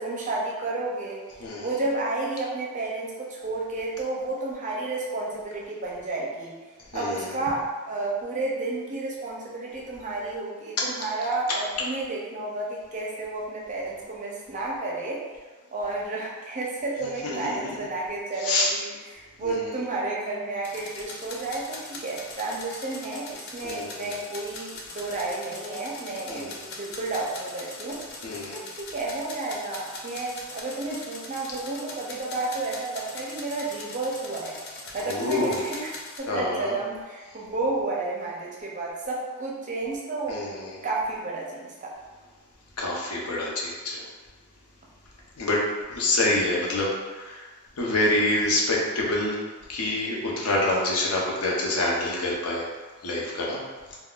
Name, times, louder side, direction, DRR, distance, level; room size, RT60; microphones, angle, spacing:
voice 1, 0.0-1.2 1.6-6.6 6.9-15.2 15.7-28.0 28.5-34.6 34.9-35.9 36.2-40.4 40.8-41.9, right 2 dB, 35° right, -3 dB, 0.5 m, -31 dB
voice 2, 1.4-1.7 6.9-7.4 17.0-17.6 18.4-18.7 19.4-19.8 23.6-24.2 26.3-26.7 28.2-28.6 35.1-35.7 36.3-36.8 40.3-40.8 42.8-44.0 45.4-45.6 45.9-49.4 49.7-52.7 53.0-53.6, left 2 dB, 85° left, -3 dB, 0.7 m, -27 dB
sound 1, 20.6-36.2, left 2 dB, 45° left, 0.4 m, -41 dB
3.7 x 2.2 x 2.3 m, 1.3 s
head